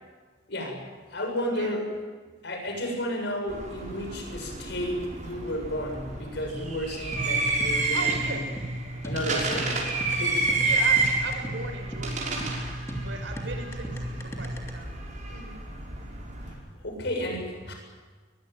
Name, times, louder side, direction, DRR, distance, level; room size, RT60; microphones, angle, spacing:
voice 1, 0.5-0.8 1.1-1.8 2.4-8.4 9.0-9.8 10.1-10.7 16.5-16.6 16.8-17.7, equal, 65° left, 2 dB, 7.2 m, -32 dB
sound 1, 3.5-16.5, right 3 dB, 45° right, 6.1 m, -30 dB
sound 2, 7.1-14.7, right 1 dB, 15° left, 3.1 m, -35 dB
voice 2, 7.9-8.5 9.3-9.6 10.6-12.3 13.0-14.9 15.3-15.6, right 3 dB, 80° right, 5 dB, 5.5 m, -38 dB
22.5 x 21.5 x 9.2 m, 1.4 s
head